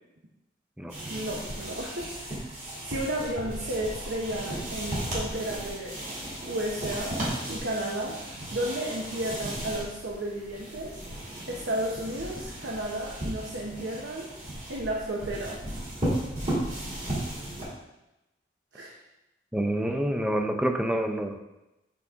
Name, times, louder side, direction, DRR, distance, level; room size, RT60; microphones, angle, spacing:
sound 1, 0.9-17.6, right 1 dB, 40° right, 2.3 m, -35 dB
voice 1, 1.1-2.5 2.8-6.0 6.5-7.2 7.5-11.0 11.5-14.3 14.7-15.6 18.7-18.9, right 1 dB, 80° right, -2 dB, 0.9 m, -33 dB
voice 2, 19.5-21.4, right 1 dB, 5° right, 5 dB, 0.4 m, -27 dB
6.0 x 5.9 x 3.6 m, 0.96 s
head